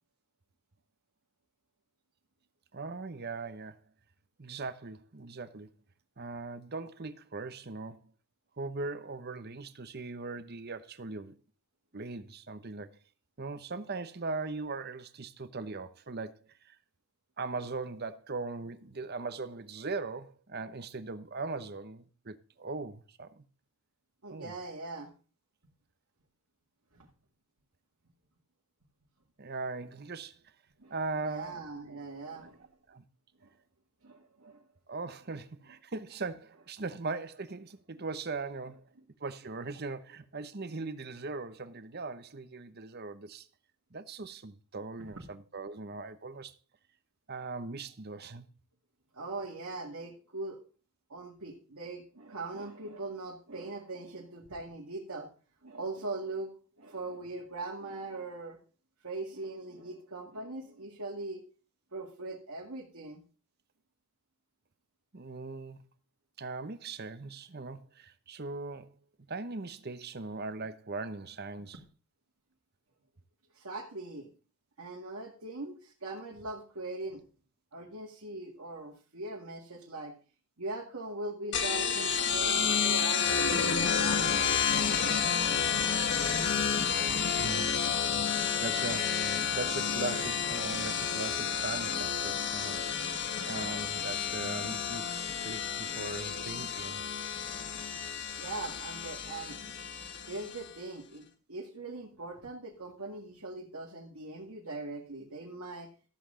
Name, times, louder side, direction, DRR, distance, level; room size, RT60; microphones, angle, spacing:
voice 1, 2.7-3.8 4.4-5.7 6.2-8.0 8.6-11.4 11.9-13.0 13.4-16.8 17.4-23.5 24.3-24.5 29.4-30.4 30.9-31.6 32.4-32.5 32.9-33.0 34.9-38.8 39.2-43.5 43.9-46.5 47.3-48.5 65.1-65.8 66.4-71.8 87.4-87.7 88.1-88.2 88.6-92.8 93.5-97.0, right 3 dB, 45° right, 0.9 m, -40 dB
voice 2, 24.2-25.1 26.9-27.1 30.8-32.7 33.4-33.5 34.0-34.6 49.1-50.6 51.1-55.3 55.6-56.5 56.8-58.6 59.0-61.4 61.9-63.2 73.5-74.3 74.8-77.2 77.7-80.1 80.6-84.5 98.4-99.6 100.3-105.9, right 2 dB, 75° right, 2.1 m, -41 dB
sound 1, 81.5-100.7, left 7 dB, 50° left, 1.7 m, -30 dB
14.0 x 7.8 x 3.8 m
head